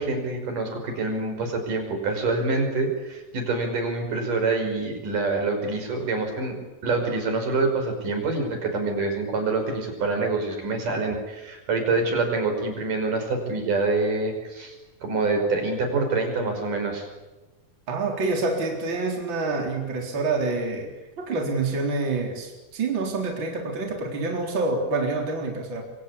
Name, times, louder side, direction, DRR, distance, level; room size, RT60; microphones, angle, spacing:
voice 1, 0.0-14.8 15.0-17.1, right 3 dB, 70° right, 4 dB, 7.1 m, -26 dB
voice 2, 17.9-20.9 21.2-25.8, right 3 dB, 35° right, 1 dB, 4.4 m, -27 dB
27.0 x 25.0 x 8.5 m, 1.1 s
omnidirectional pair, 3.9 m